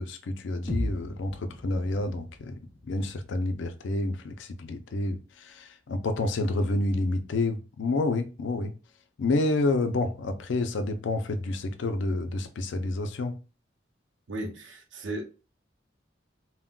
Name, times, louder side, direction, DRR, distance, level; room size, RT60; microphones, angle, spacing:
voice 1, 0.0-2.5 2.9-8.7 9.2-13.3, left 2 dB, 70° left, 0.4 m, -29 dB
sound 1, 0.7-4.6, equal, 10° left, 0.4 m, -38 dB
voice 2, 14.3-15.2, right 1 dB, 70° right, 0.7 m, -35 dB
3.6 x 2.2 x 2.2 m
head